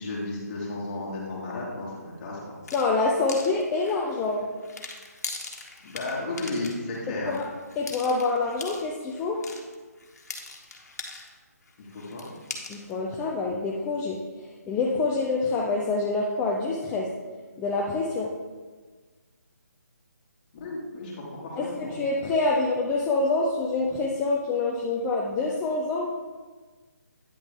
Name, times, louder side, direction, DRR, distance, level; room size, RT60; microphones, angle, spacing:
voice 1, 0.0-2.6 5.8-7.3 11.8-12.3 20.5-22.0, left 2 dB, 30° left, -5 dB, 2.2 m, -34 dB
sound 1, 2.6-11.4 11.6-12.9, left 3 dB, 65° left, 1.4 m, -41 dB
voice 2, 2.7-4.5 7.3-7.4 7.8-9.4 12.7-14.2 14.7-17.1 17.6-18.3 21.6-26.1, left 3 dB, 10° left, -3 dB, 0.4 m, -26 dB
9.3 x 6.0 x 3.6 m, 1.4 s
figure-of-eight pair, 155°, 9 cm